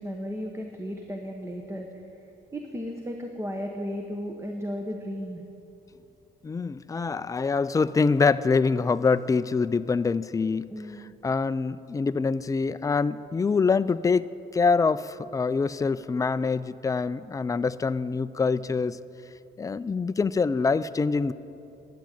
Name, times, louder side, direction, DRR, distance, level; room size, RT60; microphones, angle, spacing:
voice 1, 0.0-1.9 2.5-5.4 10.7-11.1, equal, 15° right, 3 dB, 1.1 m, -34 dB
voice 2, 6.4-10.7 11.2-19.0 19.6-21.3, left 4 dB, 15° left, 14 dB, 0.4 m, -25 dB
11.5 x 8.4 x 9.0 m, 2.8 s
cardioid pair, 90°, 20 cm